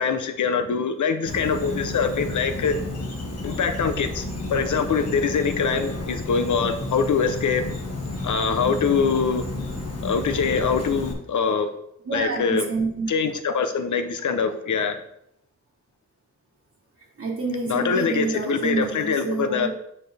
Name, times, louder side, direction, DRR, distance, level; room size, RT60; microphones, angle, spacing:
voice 1, 0.0-2.7 3.4-7.7 8.2-9.4 10.0-11.7 12.1-12.7 13.1-15.0 17.7-19.7, left 5 dB, 85° left, 9 dB, 0.7 m, -24 dB
Insect, 1.3-11.1, left 2 dB, 55° left, 1.4 m, -31 dB
voice 2, 8.6-9.0 12.0-13.1 17.0-19.7, right 3 dB, 50° right, -6 dB, 1.3 m, -28 dB
8.9 x 4.3 x 3.4 m, 0.77 s
wide cardioid pair, 145°, 30 cm